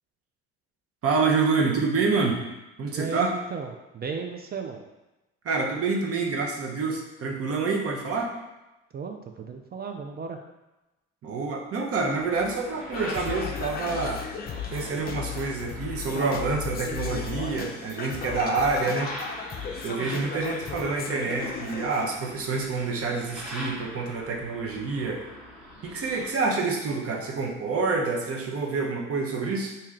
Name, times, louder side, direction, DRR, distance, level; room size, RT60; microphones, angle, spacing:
voice 1, 1.0-2.4 2.8-3.3 5.4-8.3 11.2-14.3 14.7-19.2 19.8-25.2 25.8-29.7, right 4 dB, 50° right, 0 dB, 0.8 m, -27 dB
voice 2, 2.9-4.8 8.9-10.4, right 5 dB, 30° right, 4 dB, 0.4 m, -35 dB
sound 1, 12.2-26.3, equal, 5° right, 1.0 m, -44 dB
Singing, 12.9-22.0, left 6 dB, 30° left, 0.5 m, -35 dB
3.1 x 2.8 x 3.6 m, 1.0 s
supercardioid pair, 80°, 30 cm